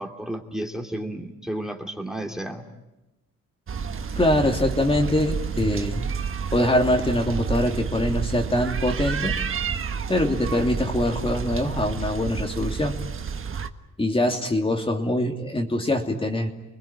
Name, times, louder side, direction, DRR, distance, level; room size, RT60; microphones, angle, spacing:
voice 1, 0.0-2.6, right 1 dB, ahead, 2 dB, 2.9 m, -32 dB
sound 1, 3.7-13.7, right 6 dB, 45° right, 1.5 m, -30 dB
voice 2, 4.2-6.1 6.5-9.4 10.1-13.0 14.0-16.5, left 1 dB, 20° left, 2 dB, 2.8 m, -23 dB
29.5 x 21.0 x 9.0 m, 0.99 s
cardioid pair, 110°, 30 cm